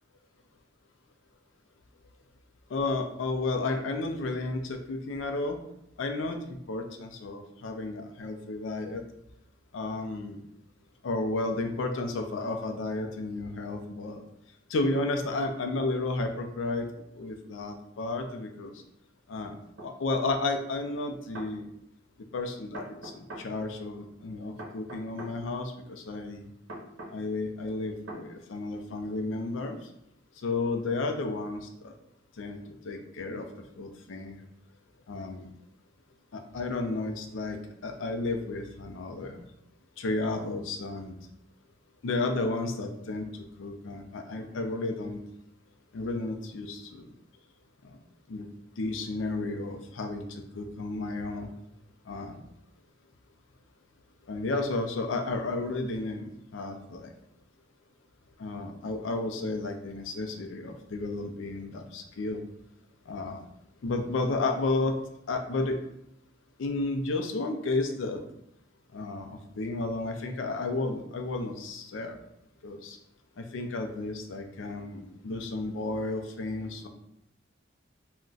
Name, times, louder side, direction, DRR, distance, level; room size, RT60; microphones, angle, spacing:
voice 1, 2.7-5.6 6.0-9.0 9.7-10.4 11.0-14.2 14.7-16.9 17.2-18.7 19.3-19.5 19.8-21.7 22.3-26.5 27.1-29.8 30.4-31.9 32.4-32.6 32.8-33.5 33.8-34.4 35.1-35.5 36.3-37.6 37.8-39.4 40.0-41.1 42.0-43.3 43.6-45.2 45.9-47.1 48.3-48.5 48.8-51.5 52.1-52.4 54.3-56.3 56.5-57.1 58.4-62.4 63.1-63.4 63.8-65.0 65.3-65.8 66.6-68.2 68.9-72.2 72.6-73.0 73.4-76.9, left 2 dB, 80° left, 5 dB, 0.4 m, -32 dB
sound 1, 19.8-19.9 21.1-21.5 22.7-23.5 24.6-25.3 26.7-27.2 28.1-28.2, right 1 dB, 70° right, 0.7 m, -41 dB
2.3 x 2.1 x 3.8 m, 0.79 s
head